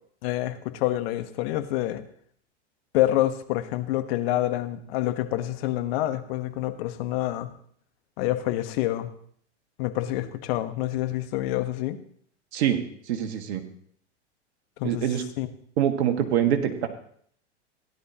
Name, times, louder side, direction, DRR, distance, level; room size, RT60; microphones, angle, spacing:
voice 1, 0.2-2.0 2.9-7.5 8.2-9.1 9.8-12.0 14.8-15.1 15.4-15.5, left 14 dB, 55° left, 9 dB, 1.2 m, -27 dB
voice 2, 13.1-13.6 14.8-15.2 15.8-16.9, right 10 dB, 60° right, 5 dB, 1.8 m, -24 dB
16.0 x 10.5 x 2.9 m, 0.63 s
hypercardioid pair, 100°, 36 cm